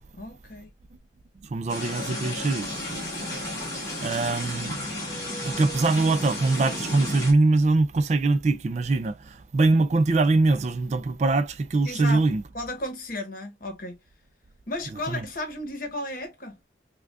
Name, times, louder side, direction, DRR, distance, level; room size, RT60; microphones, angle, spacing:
voice 1, 0.2-0.7 11.8-14.0 14.7-16.6, left 1 dB, 50° left, 1.0 m, -34 dB
voice 2, 1.5-2.7 4.0-4.8 5.5-9.1 9.5-12.4 15.1-15.2, right 3 dB, 40° right, 0.3 m, -22 dB
sound 1, 1.7-7.3, left 1 dB, 20° left, 1.4 m, -33 dB
4.8 x 2.3 x 2.2 m
head